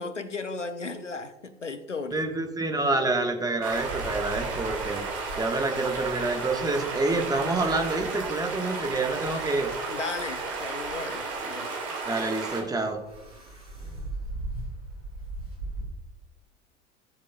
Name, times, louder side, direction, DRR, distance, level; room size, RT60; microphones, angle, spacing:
voice 1, 0.0-2.3 9.9-11.7, left 3 dB, 90° left, 0.8 m, -35 dB
voice 2, 2.1-5.0 5.4-9.7 12.1-13.0, right 2 dB, 10° right, 1.3 m, -27 dB
sound 1, 3.6-12.6, right 4 dB, 45° right, 3.0 m, -33 dB
sound 2, 3.7-15.8, right 2 dB, 85° right, 2.5 m, -41 dB
17.0 x 7.4 x 2.3 m
figure-of-eight pair, 75°, 35 cm